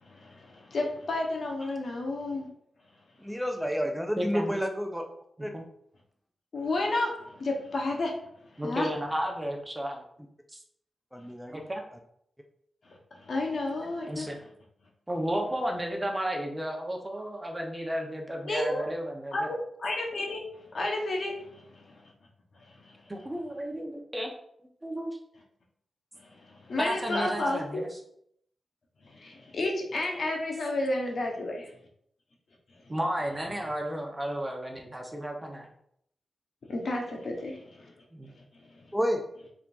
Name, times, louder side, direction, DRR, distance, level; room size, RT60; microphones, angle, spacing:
voice 1, 0.0-2.5 6.5-8.1 8.5-8.9 12.8-14.3 18.4-18.9 19.3-20.4 20.7-22.0 22.8-23.0 26.2-27.8 29.1-31.7 36.7-37.9 38.6-38.8, left 2 dB, 70° left, 0 dB, 1.0 m, -32 dB
voice 2, 3.2-5.1 5.4-5.5 11.1-11.6 38.9-39.2, equal, 5° right, 3 dB, 0.6 m, -30 dB
voice 3, 4.2-4.5 5.5-5.6 8.6-10.0 10.5-10.6 11.5-11.8 14.1-14.4 15.1-19.5 23.1-24.3 24.8-25.2 26.8-27.9 32.9-35.7 38.1-38.3, equal, 25° right, 2 dB, 0.9 m, -33 dB
4.3 x 3.6 x 2.6 m, 0.70 s
cardioid pair, 45°, 0 cm